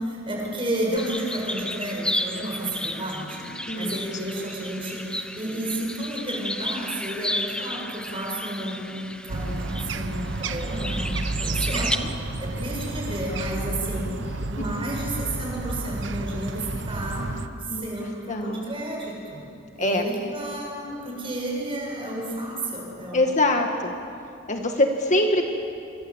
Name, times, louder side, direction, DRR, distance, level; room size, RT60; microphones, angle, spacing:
voice 1, 0.0-14.1 14.5-17.3 17.6-19.5 19.8-23.3, right 1 dB, 30° right, -2 dB, 7.6 m, -31 dB
sound 1, 1.0-12.0, left 1 dB, 5° left, 1.0 m, -33 dB
sound 2, 9.3-17.5, right 2 dB, 70° right, 1.1 m, -31 dB
voice 2, 11.7-12.1 14.2-14.3 14.6-14.9 17.7-17.8 18.3-18.6 19.8-20.0 23.1-23.9 24.5-25.4, left 1 dB, 40° left, 4 dB, 1.7 m, -24 dB
26.5 x 25.0 x 8.1 m, 2.6 s
head